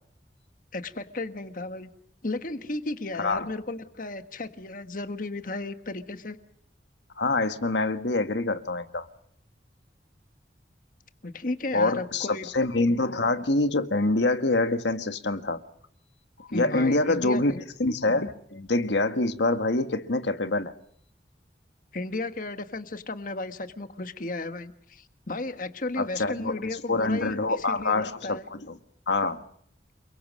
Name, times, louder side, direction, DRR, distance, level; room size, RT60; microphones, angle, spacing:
voice 1, 0.7-1.9 2.2-6.4 11.2-12.5 16.5-17.7 21.9-28.5, left 2 dB, 50° left, 1.4 m, -34 dB
voice 2, 3.2-3.5 7.2-9.1 11.7-15.6 16.4-20.7 26.0-26.6 26.9-28.7 29.1-29.4, left 2 dB, 90° left, 1.6 m, -26 dB
29.0 x 22.5 x 6.3 m
head